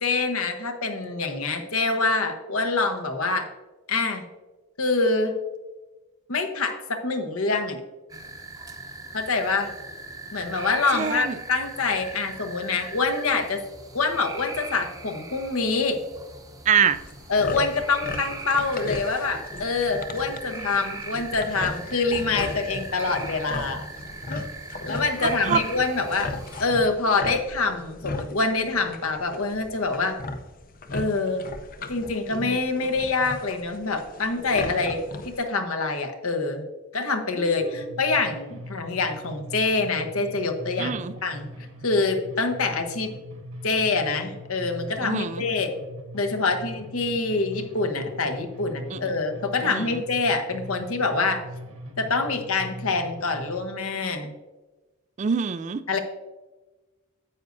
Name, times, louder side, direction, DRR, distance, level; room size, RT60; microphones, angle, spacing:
voice 1, 0.0-3.5 3.9-4.2 4.8-5.3 6.3-7.8 9.1-9.7 10.3-13.6 13.9-16.0 17.3-23.8 24.8-26.3 26.6-30.2 30.9-31.5 31.9-36.6 36.9-41.5 41.8-43.1 43.6-45.7 46.1-51.4 52.0-54.3 55.9-56.0, left 3 dB, 75° left, 6 dB, 1.1 m, -25 dB
sound 1, 8.1-26.7, right 3 dB, 15° right, 0.8 m, -40 dB
voice 2, 10.9-11.3 16.7-17.0 25.5-25.6 37.4-37.7 40.8-41.1 45.0-45.4 48.9-49.0 49.6-50.0 55.2-55.8, right 7 dB, 35° right, 13 dB, 0.3 m, -25 dB
sound 2, 16.9-35.4, left 2 dB, 40° left, 0.6 m, -37 dB
sound 3, 37.6-53.6, equal, 75° right, 1.6 m, -41 dB
9.7 x 8.2 x 2.6 m, 1.1 s
head